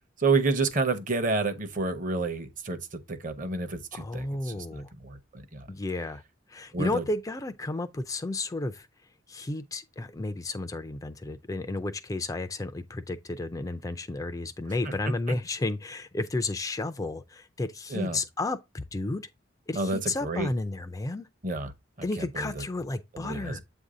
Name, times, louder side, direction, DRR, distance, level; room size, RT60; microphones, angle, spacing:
voice 1, 0.2-5.6 6.7-7.0 14.8-15.3 17.9-18.2 19.7-20.5 21.4-21.7 22.0-22.6 23.1-23.6, right 3 dB, 45° right, 0.8 m, -30 dB
voice 2, 3.9-4.9 5.7-6.2 6.5-8.9 9.3-19.3 19.7-21.3 22.0-23.6, left 2 dB, 20° left, 0.3 m, -32 dB
8.0 x 2.7 x 4.8 m
head